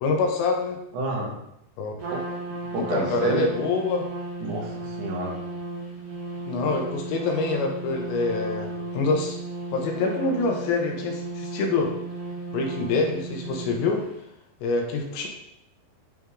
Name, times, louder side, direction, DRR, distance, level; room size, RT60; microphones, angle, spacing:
voice 1, 0.0-0.8 1.8-1.9 2.9-4.0 6.5-9.4 9.7-11.9 12.5-14.0 14.6-15.3, left 3 dB, 75° left, 2 dB, 3.1 m, -25 dB
voice 2, 0.9-1.3 2.1-2.2 2.7-3.4 4.4-5.4, right 1 dB, 75° right, -2 dB, 3.8 m, -29 dB
Trumpet, 2.0-14.1, right 2 dB, 55° right, 1.7 m, -35 dB
9.1 x 4.3 x 3.7 m, 0.78 s
omnidirectional pair, 5.3 m